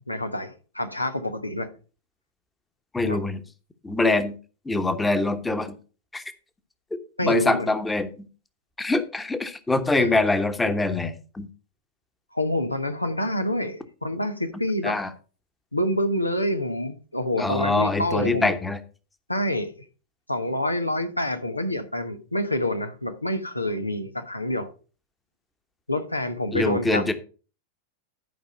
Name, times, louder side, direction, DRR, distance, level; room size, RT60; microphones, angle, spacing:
voice 1, 0.1-1.7 3.0-3.2 7.2-7.7 10.0-10.2 12.3-14.9 15.7-18.5 19.3-19.7 20.3-24.7 25.9-27.1, left 1 dB, 85° left, 1.1 m, -27 dB
voice 2, 2.9-3.4 3.8-4.4 4.6-5.8 6.1-6.2 7.2-8.3 8.8-11.5 14.8-15.1 17.4-18.8 26.5-27.1, left 2 dB, 10° left, 1.2 m, -24 dB
11.5 x 5.3 x 5.2 m
figure-of-eight pair, 90°, 0 cm